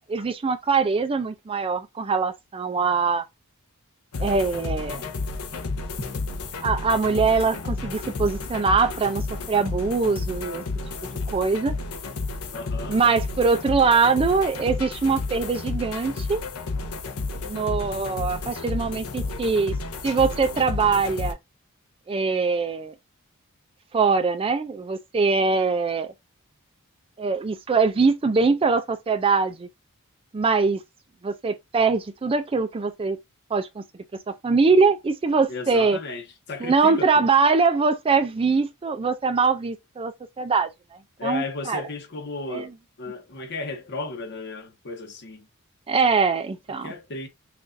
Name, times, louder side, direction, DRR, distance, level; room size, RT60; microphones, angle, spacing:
voice 1, 0.1-3.3 4.2-5.0 6.6-10.6 11.3-11.7 12.9-16.4 17.4-19.7 20.0-21.4 22.1-22.9 23.9-26.1 27.2-29.7 30.3-30.8 31.2-33.2 33.5-33.8 34.3-36.0 36.6-40.7 41.2-41.8 42.5-42.7 45.9-46.9, right 4 dB, 25° right, 0.4 m, -22 dB
sound 1, 4.1-21.3, left 3 dB, 80° left, 0.7 m, -31 dB
voice 2, 12.5-13.0 35.5-37.3 41.2-42.7 43.0-45.5 46.8-47.3, left 3 dB, 50° left, 1.0 m, -34 dB
5.7 x 2.5 x 2.5 m
head